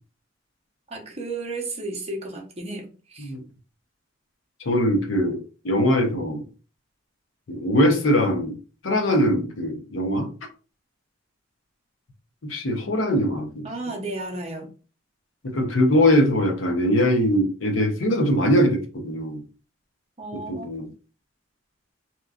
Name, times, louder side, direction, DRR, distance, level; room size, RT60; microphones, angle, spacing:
voice 1, 0.9-3.3 13.6-14.7 20.2-20.7, right 2 dB, 30° right, 0 dB, 0.7 m, -33 dB
voice 2, 4.6-6.4 7.5-8.5 8.8-10.3 12.4-13.7 15.4-19.4 20.5-20.9, equal, 75° left, 3 dB, 0.7 m, -21 dB
2.9 x 2.3 x 2.4 m, 0.36 s
head